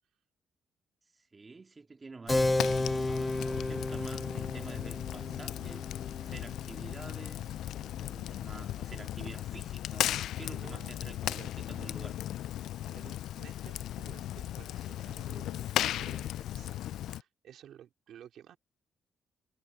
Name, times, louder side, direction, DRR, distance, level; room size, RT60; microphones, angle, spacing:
voice 1, 1.1-7.5 8.0-12.2, right 3 dB, 30° right, 2.3 m, -49 dB
Fire, 2.3-17.2, left 12 dB, 80° left, 0.3 m, -36 dB
Keyboard (musical), 2.3-8.4, left 2 dB, 15° left, 0.5 m, -34 dB
voice 2, 10.5-11.0 11.2-11.5 12.6-18.6, right 10 dB, 75° right, 2.8 m, -54 dB
cardioid pair, 90°, 0 cm